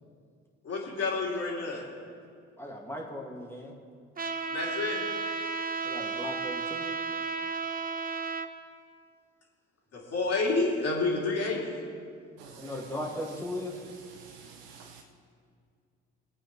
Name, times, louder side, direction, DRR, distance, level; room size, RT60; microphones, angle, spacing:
voice 1, 0.6-1.8 4.5-5.0 9.9-11.7, left 3 dB, 45° left, 3.0 m, -29 dB
voice 2, 2.6-3.7 5.8-6.9 12.6-13.8, left 1 dB, 5° left, 2.2 m, -37 dB
Trumpet, 4.2-8.5, right 5 dB, 25° right, 0.9 m, -33 dB
voice 3, 12.4-13.1 13.7-15.0, right 6 dB, 70° right, 0.9 m, -49 dB
23.0 x 8.6 x 3.3 m
hypercardioid pair, 50°, 34 cm